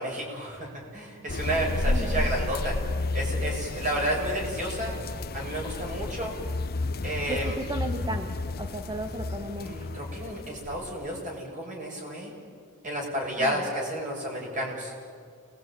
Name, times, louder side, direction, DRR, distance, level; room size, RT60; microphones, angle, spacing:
voice 1, 0.0-2.8 3.1-5.0 5.3-6.4 7.0-7.6 9.6-12.3 12.8-14.9, right 1 dB, 35° right, -1 dB, 7.8 m, -31 dB
sound 1, 1.3-11.4, left 2 dB, 45° left, 0.8 m, -32 dB
voice 2, 1.9-2.3 7.3-9.8 13.4-13.6, right 1 dB, 20° right, 5 dB, 1.5 m, -35 dB
29.5 x 21.0 x 9.3 m, 2.1 s
head